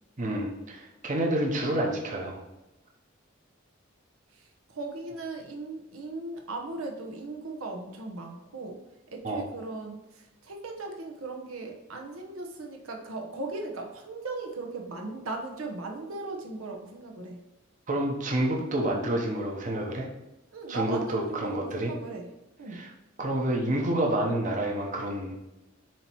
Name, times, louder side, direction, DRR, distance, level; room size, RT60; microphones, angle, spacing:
voice 1, 0.2-2.4 9.2-9.4 17.9-20.1 20.7-21.9 22.7-22.9 23.2-25.4, right 1 dB, 35° right, -1 dB, 0.9 m, -28 dB
voice 2, 4.3-8.8 9.1-17.4 20.5-22.3 22.6-22.9, right 3 dB, 90° right, 2 dB, 1.0 m, -38 dB
7.5 x 2.9 x 4.5 m, 0.97 s
head